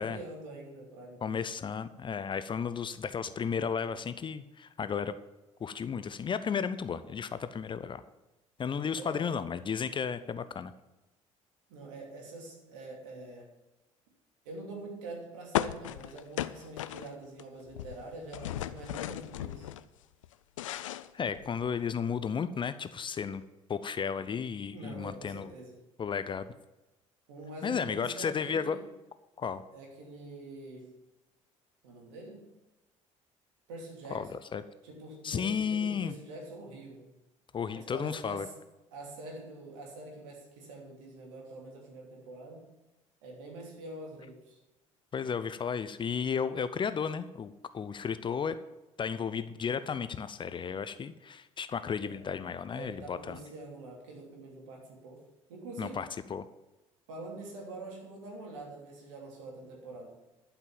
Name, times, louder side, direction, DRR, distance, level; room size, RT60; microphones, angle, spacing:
voice 1, 0.0-1.4 8.9-9.3 11.7-13.5 14.4-19.7 24.7-25.8 27.3-28.8 29.7-30.9 31.8-32.4 33.7-34.4 34.8-37.1 37.7-38.5 38.9-42.7 43.2-44.6 52.0-52.2 52.7-55.2 55.5-56.0 57.1-60.2, right 2 dB, 65° right, 0 dB, 3.0 m, -45 dB
voice 2, 1.2-5.1 5.6-8.0 8.6-10.7 21.1-23.4 23.7-25.5 26.0-26.5 27.6-28.8 29.4-29.6 34.1-34.6 35.2-36.1 37.5-38.5 45.1-48.6 49.0-53.4 55.8-56.4, left 6 dB, 30° left, 13 dB, 0.6 m, -33 dB
sound 1, 15.5-17.4 17.7-19.8 20.2-21.8, left 13 dB, 70° left, 0.5 m, -36 dB
12.0 x 5.9 x 7.2 m, 1.0 s
figure-of-eight pair, 55°, 17 cm